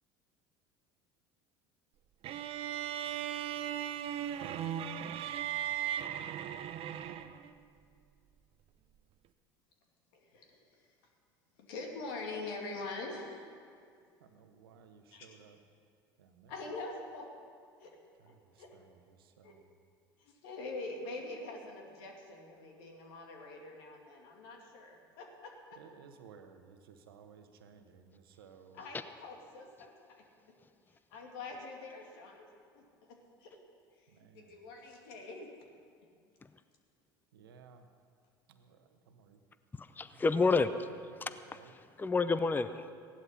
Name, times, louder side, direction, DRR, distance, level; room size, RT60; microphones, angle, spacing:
sound 1, 2.2-7.5, right 10 dB, 50° right, 0.7 m, -37 dB
voice 1, 10.1-10.9 11.6-13.7 15.1-15.3 16.5-17.3 17.8-18.0 18.3-18.8 19.4-19.5 20.2-25.8 28.7-30.2 31.1-33.6 34.0-35.5, left 3 dB, 75° left, 1 dB, 2.4 m, -45 dB
voice 2, 14.2-15.6 16.2-16.6 18.2-19.7 25.8-28.9 34.1-34.6 37.3-37.9 38.5-39.4 40.1-40.6 41.1-41.7, right 6 dB, 85° right, 7 dB, 1.1 m, -58 dB
voice 3, 39.8-40.7 41.2-41.6 42.0-42.9, left 4 dB, 15° left, 12 dB, 0.6 m, -29 dB
16.0 x 11.5 x 5.7 m, 2.3 s
hypercardioid pair, 70°, 12 cm